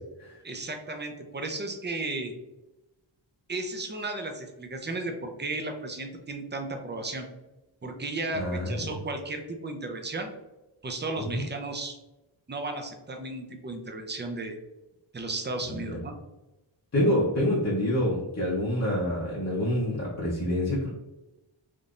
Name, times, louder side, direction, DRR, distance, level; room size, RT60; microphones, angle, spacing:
voice 1, 0.4-2.3 3.5-7.3 7.8-10.3 10.8-11.9 12.5-14.6 15.1-16.1, right 2 dB, 25° right, 4 dB, 0.5 m, -34 dB
voice 2, 8.3-8.9 11.3-11.4 15.7-16.0 16.9-20.9, left 1 dB, 35° left, -7 dB, 0.8 m, -27 dB
3.6 x 2.6 x 2.4 m, 1.0 s
wide cardioid pair, 60°, 48 cm